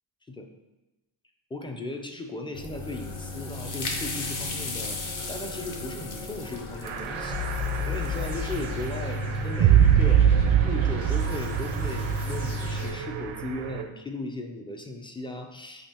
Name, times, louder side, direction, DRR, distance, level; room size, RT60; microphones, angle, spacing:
voice 1, 1.5-5.0 5.3-7.4 7.9-10.2 10.7-15.9, left 2 dB, 10° left, 4 dB, 0.4 m, -37 dB
sound 1, 2.5-12.9, left 2 dB, 75° left, 1.2 m, -34 dB
sound 2, 2.8-8.3, left 3 dB, 40° left, 0.7 m, -37 dB
sound 3, 6.8-13.8, right 9 dB, 85° right, 0.6 m, -24 dB
6.4 x 2.8 x 2.9 m, 1.0 s
cardioid pair, 95°, 47 cm